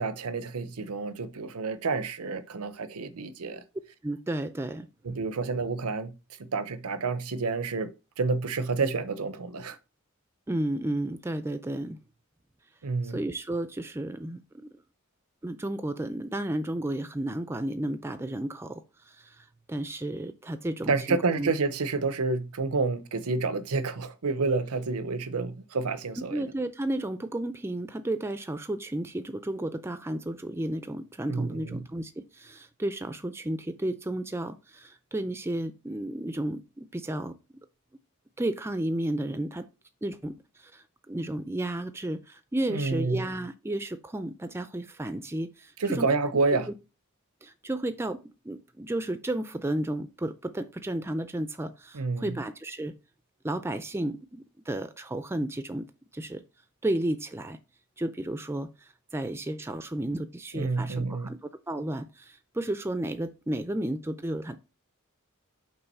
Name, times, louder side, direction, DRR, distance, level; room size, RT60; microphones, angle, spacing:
voice 1, 0.0-3.6 5.0-6.1 6.5-7.9 8.2-9.8 12.8-13.2 20.9-26.5 31.3-31.8 42.7-43.2 45.8-46.7 51.9-52.4 60.5-61.3, right 4 dB, 90° right, 0.7 m, -29 dB
voice 2, 4.0-4.9 10.5-12.0 13.0-14.7 15.4-21.5 26.2-37.4 38.4-39.7 40.0-46.1 46.7-46.8 47.4-52.9 53.4-55.9 56.1-56.4 56.8-57.6 58.0-64.6, right 1 dB, 10° right, 0.4 m, -33 dB
5.6 x 3.7 x 5.4 m
head